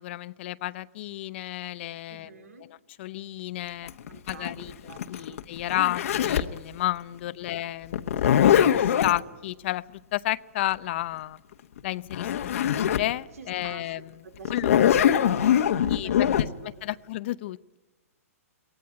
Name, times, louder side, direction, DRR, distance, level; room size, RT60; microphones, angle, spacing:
voice 1, 0.0-3.9 4.3-4.7 5.1-8.1 8.4-11.4 11.8-14.2 14.5-14.7 15.9-17.8, left 15 dB, 50° left, 17 dB, 0.7 m, -32 dB
voice 2, 2.1-2.7 4.1-5.4 7.2-7.6 13.4-13.9 14.2-16.3 16.6-16.8, right 6 dB, 75° right, 7 dB, 3.6 m, -47 dB
Zipper (clothing), 3.9-6.6 7.9-9.2 11.8-11.9 12.1-13.1 13.6-13.7 14.5-16.5, left 10 dB, 65° left, 1.3 m, -22 dB
23.0 x 18.5 x 9.6 m, 1.2 s
hypercardioid pair, 145°, 8 cm